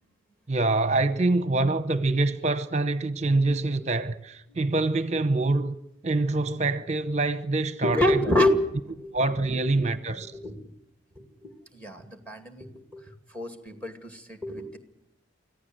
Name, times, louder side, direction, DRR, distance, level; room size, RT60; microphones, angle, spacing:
voice 1, 0.5-5.8 6.0-8.2 9.1-10.3, right 2 dB, 35° right, 0.8 m, -25 dB
voice 2, 7.8-9.4 9.7-9.8 10.2-10.7 11.2-14.8, left 1 dB, 10° left, 2.3 m, -28 dB
25.0 x 15.5 x 7.8 m
head